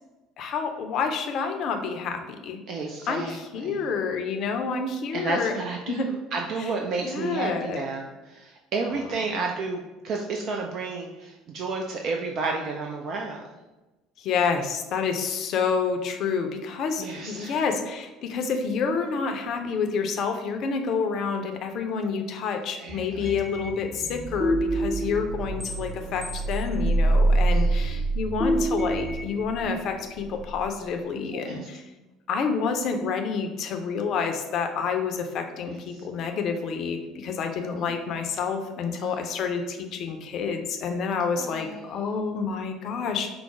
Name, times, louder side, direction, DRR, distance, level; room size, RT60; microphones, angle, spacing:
voice 1, 0.4-2.6 3.1-5.5 5.9-6.1 7.0-7.8 8.8-9.3 14.2-31.8 32.3-43.3, left 5 dB, 50° left, 5 dB, 0.5 m, -28 dB
voice 2, 2.7-3.8 5.1-13.4 17.0-17.6 22.8-23.4 27.4-28.0 31.3-31.7 35.6-36.0 37.7-37.8 38.9-39.2 41.4-42.2, right 4 dB, 50° right, 1 dB, 0.4 m, -32 dB
sound 1, 22.9-30.7, right 2 dB, 25° right, 0.8 m, -26 dB
4.7 x 2.0 x 4.6 m, 1.1 s
figure-of-eight pair, 60°, 0 cm